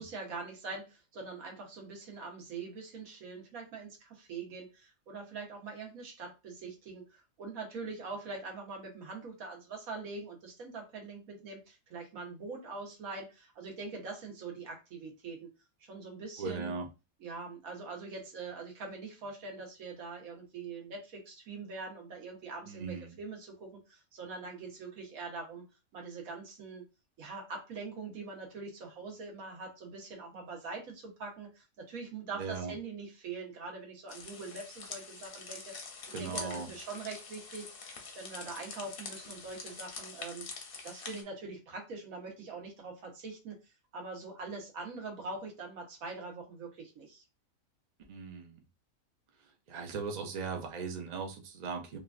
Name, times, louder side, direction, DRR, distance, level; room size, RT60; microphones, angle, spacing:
voice 1, 0.0-15.5 15.8-16.7 17.2-25.6 25.9-26.8 27.2-35.9 36.2-37.7 38.1-40.5 40.8-43.6 43.9-47.2, right 4 dB, 80° right, 1 dB, 1.4 m, -43 dB
voice 2, 16.4-16.9 22.6-23.2 32.3-32.7 36.1-36.7 48.1-48.6 49.7-52.0, right 5 dB, 55° right, 3 dB, 0.4 m, -38 dB
sound 1, 34.1-41.2, left 4 dB, 55° left, 0.7 m, -45 dB
3.1 x 2.4 x 2.4 m, 0.28 s
omnidirectional pair, 1.5 m